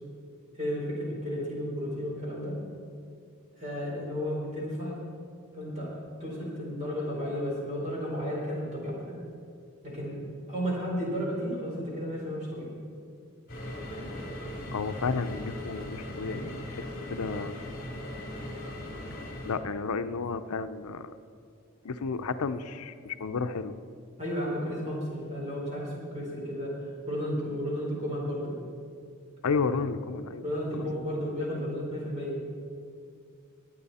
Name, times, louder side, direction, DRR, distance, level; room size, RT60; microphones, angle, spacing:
voice 1, 0.5-2.6 3.5-5.0 5.5-5.9 6.2-9.2 9.8-10.2 10.5-12.7 24.2-28.6 30.4-32.4, equal, 30° right, -4 dB, 4.1 m, -33 dB
sound 1, 13.5-19.6, left 1 dB, 40° left, 2.7 m, -39 dB
voice 2, 14.7-17.5 19.4-21.1 21.8-23.8 29.4-30.4 30.7-31.3, left 4 dB, 90° left, 10 dB, 0.6 m, -32 dB
21.0 x 8.8 x 4.2 m, 2.3 s
head